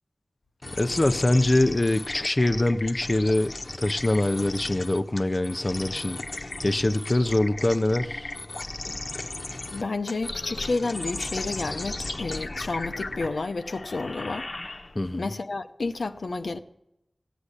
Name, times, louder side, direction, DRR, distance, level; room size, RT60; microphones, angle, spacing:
sound 1, 0.6-15.2, left 2 dB, 55° left, 1.1 m, -36 dB
voice 1, 0.7-8.4 14.9-15.3, left 1 dB, 35° left, 0.7 m, -24 dB
voice 2, 9.7-14.5 15.1-16.6, left 3 dB, 80° left, 0.8 m, -30 dB
15.5 x 8.2 x 10.0 m
wide cardioid pair, 65°, 0 cm